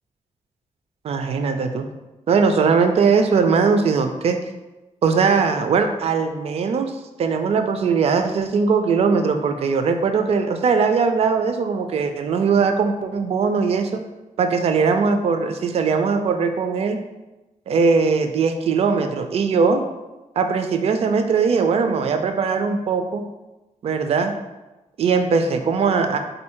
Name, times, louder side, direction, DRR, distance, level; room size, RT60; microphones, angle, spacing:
voice 1, 1.0-1.9 2.3-4.4 5.0-6.9 7.2-14.0 14.4-17.0 17.7-19.8 20.4-23.2 23.8-24.3 25.0-26.2, right 5 dB, 50° right, 7 dB, 0.4 m, -20 dB
3.9 x 2.7 x 4.3 m, 1.1 s
wide cardioid pair, 180°, 13 cm